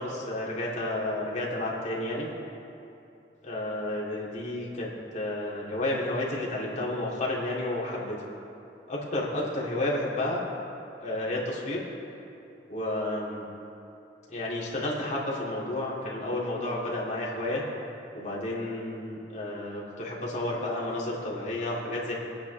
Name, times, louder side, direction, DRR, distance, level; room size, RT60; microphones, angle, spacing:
voice 1, 0.0-2.3 3.4-8.2 8.9-10.4 11.0-11.8 12.7-13.4 14.3-17.6 18.1-22.1, left 1 dB, 40° left, -5 dB, 2.9 m, -31 dB
24.5 x 8.9 x 3.5 m, 2.7 s
head